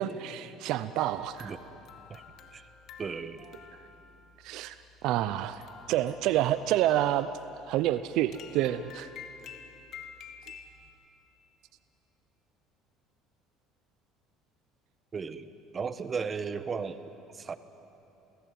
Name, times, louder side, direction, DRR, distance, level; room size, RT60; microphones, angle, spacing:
voice 1, 0.0-1.5 4.4-4.7 5.0-7.3 7.7-9.1, right 13 dB, 70° right, 13 dB, 0.7 m, -28 dB
sound 1, 1.0-10.9, left 7 dB, 55° left, 2.4 m, -51 dB
voice 2, 3.0-3.5 15.1-17.0 17.3-17.5, right 5 dB, 30° right, 12 dB, 1.2 m, -35 dB
29.0 x 18.0 x 9.5 m, 3.0 s
supercardioid pair, 110°, 0 cm